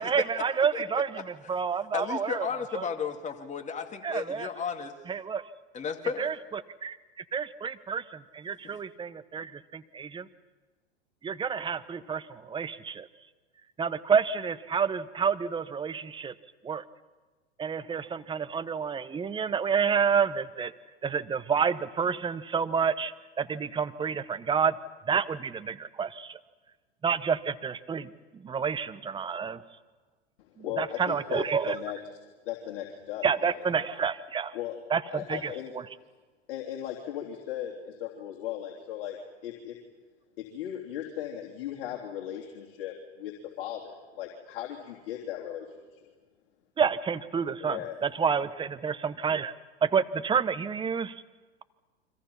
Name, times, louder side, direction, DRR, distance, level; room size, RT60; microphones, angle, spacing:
voice 1, 0.0-2.5 2.7-2.8 4.0-4.5 5.1-5.5 6.2-7.0 7.3-10.3 11.2-13.1 13.8-16.3 16.6-16.8 17.6-20.7 21.0-23.1 23.4-24.8 25.1-26.4 27.0-29.6 30.6-31.8 33.2-34.5 34.9-35.9 46.8-51.2, right 6 dB, 15° right, 14 dB, 0.9 m, -29 dB
voice 2, 1.9-4.9 5.7-6.4 8.6-8.8, left 6 dB, 20° left, 4 dB, 2.4 m, -33 dB
voice 3, 30.4-32.0 32.4-33.9 34.5-34.8 35.1-35.7 36.5-39.2 39.4-39.7 40.4-46.1 47.6-48.0, left 11 dB, 55° left, -1 dB, 3.4 m, -37 dB
29.5 x 25.0 x 5.7 m, 1.3 s
hypercardioid pair, 105°, 34 cm